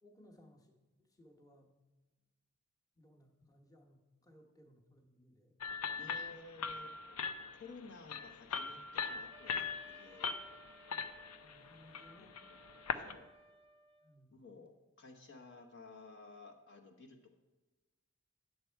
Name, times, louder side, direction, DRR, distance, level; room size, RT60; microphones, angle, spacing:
voice 1, 0.0-1.7 3.0-5.5 11.4-12.4 14.0-14.3, left 1 dB, 15° left, 1 dB, 1.1 m, -63 dB
sound 1, 5.6-13.1, left 5 dB, 80° left, 0.6 m, -41 dB
voice 2, 6.0-6.9 7.5-10.3 12.2-12.5 12.9-13.3 14.3-17.3, left 3 dB, 55° left, 3 dB, 1.0 m, -55 dB
Wind instrument woodwind instrument, 9.3-14.2, right 2 dB, 25° right, 0.5 m, -60 dB
10.5 x 6.7 x 4.5 m, 1.2 s
head